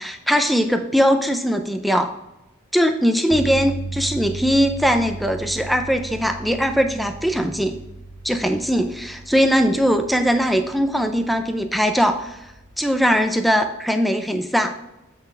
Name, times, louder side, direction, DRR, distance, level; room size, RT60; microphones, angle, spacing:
voice 1, 0.0-2.1 2.7-7.8 8.2-12.5 12.8-14.7, equal, ahead, 6 dB, 0.5 m, -20 dB
sound 1, 3.3-13.4, right 3 dB, 25° left, 0.8 m, -36 dB
7.9 x 5.9 x 3.3 m, 0.95 s
head